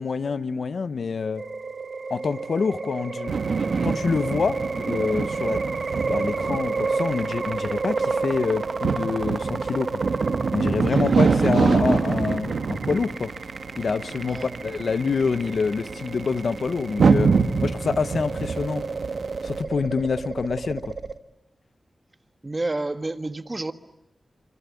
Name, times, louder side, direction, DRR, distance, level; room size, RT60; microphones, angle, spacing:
voice 1, 0.0-1.4 2.1-3.3 3.8-5.6 6.1-10.0 10.5-13.3 13.8-17.3 17.6-18.9 19.4-20.9, left 5 dB, 80° left, 1.0 m, -26 dB
sound 1, 1.4-21.2, right 4 dB, 60° right, 1.2 m, -31 dB
sound 2, 3.3-19.6, right 5 dB, 85° right, 1.5 m, -26 dB
voice 2, 14.2-14.8 22.4-23.7, right 2 dB, 30° right, 1.5 m, -30 dB
26.0 x 26.0 x 8.5 m
wide cardioid pair, 80°, 0 cm